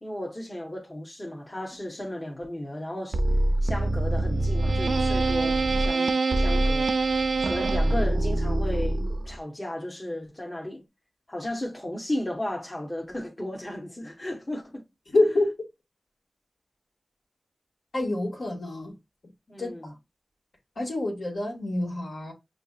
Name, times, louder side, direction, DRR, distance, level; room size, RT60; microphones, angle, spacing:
voice 1, 0.0-3.2 3.6-7.1 7.4-10.8 11.3-14.8 19.5-19.9, left 1 dB, 30° left, 0.9 m, -34 dB
sound 1, 3.1-9.4, right 2 dB, 80° right, 0.4 m, -24 dB
voice 2, 15.1-15.5 17.9-18.9 19.6-19.7 20.8-22.3, left 2 dB, 80° left, 1.8 m, -26 dB
6.0 x 2.8 x 2.3 m
wide cardioid pair, 60°, 0 cm